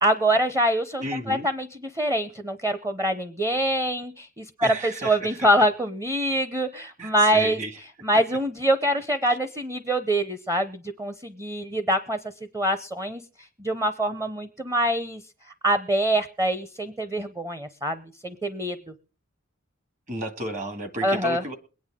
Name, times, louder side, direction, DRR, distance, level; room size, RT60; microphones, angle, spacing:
voice 1, 0.0-7.6 8.0-12.2 12.5-13.2 13.6-15.2 15.6-18.8 21.0-21.4, right 1 dB, 15° right, 11 dB, 0.7 m, -24 dB
voice 2, 1.0-1.5 4.6-5.5 7.0-7.8 9.3-9.4 20.1-21.5, right 1 dB, 40° right, 8 dB, 1.8 m, -33 dB
22.0 x 9.5 x 3.6 m, 0.35 s
head